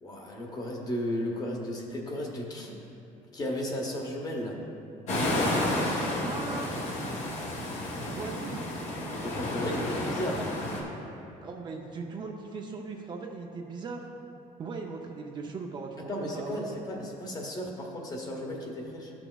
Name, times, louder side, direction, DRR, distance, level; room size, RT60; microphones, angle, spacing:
voice 1, 0.0-2.7 3.3-4.6 6.3-6.5 9.2-10.5 16.1-19.1, equal, 25° left, 0 dB, 0.9 m, -34 dB
sound 1, 5.1-10.8, left 1 dB, 45° left, 1.2 m, -31 dB
voice 2, 6.2-6.7 8.2-8.7 11.4-14.1 14.6-16.8, right 4 dB, 30° right, 1 dB, 0.5 m, -38 dB
13.5 x 6.0 x 2.3 m, 2.8 s
cardioid pair, 170°, 15 cm